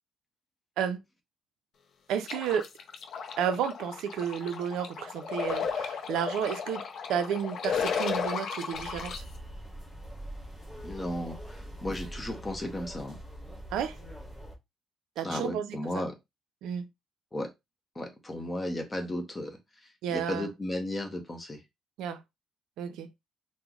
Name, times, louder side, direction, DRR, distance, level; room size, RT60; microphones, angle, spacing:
voice 1, 2.1-2.7 3.4-6.8 7.1-9.2 13.7-14.0 15.2-16.0 16.6-16.9 20.0-20.5 22.0-22.2 22.8-23.1, right 8 dB, 80° right, 0.4 m, -32 dB
sound 1, 2.2-9.2, left 6 dB, 50° left, 0.5 m, -34 dB
sound 2, 8.7-14.6, right 1 dB, ahead, 1.1 m, -43 dB
voice 2, 10.8-13.2 15.2-16.2 17.3-17.5 17.9-21.6, left 1 dB, 15° left, 0.7 m, -35 dB
2.9 x 2.0 x 3.7 m
cardioid pair, 175°, 0 cm